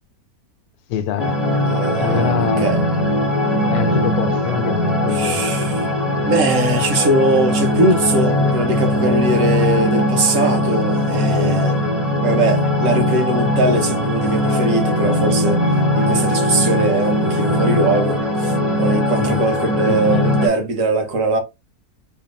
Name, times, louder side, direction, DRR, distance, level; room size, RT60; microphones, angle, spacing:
voice 1, 0.9-1.4 2.0-2.7 3.7-5.4 19.2-19.4 19.9-20.3, left 9 dB, 90° left, 1.1 m, -24 dB
sound 1, 1.2-20.5, left 1 dB, ahead, 0.8 m, -19 dB
voice 2, 1.6-2.8 5.1-5.9 6.2-11.8 12.2-15.6 15.9-21.4, right 2 dB, 60° right, 1.4 m, -21 dB
3.4 x 3.4 x 2.4 m
omnidirectional pair, 1.6 m